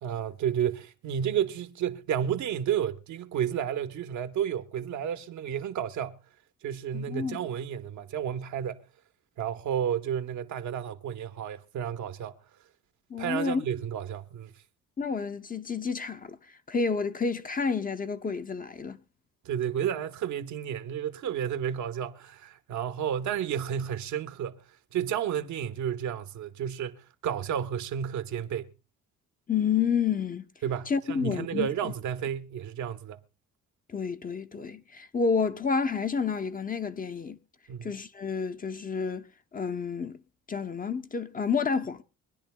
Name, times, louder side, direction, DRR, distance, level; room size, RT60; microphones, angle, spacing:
voice 1, 0.0-6.2 6.6-8.8 9.4-12.3 13.2-14.5 19.4-24.6 24.9-28.7 30.6-33.2 37.7-38.0, right 9 dB, 70° right, 1.0 m, -31 dB
voice 2, 6.9-7.4 13.1-13.6 15.0-16.4 16.7-19.0 29.5-30.5 30.9-31.9 33.9-37.4 37.8-39.2 39.5-40.2 40.5-42.0, left 5 dB, 30° left, 0.7 m, -29 dB
24.5 x 10.0 x 2.2 m
cardioid pair, 90°, 30 cm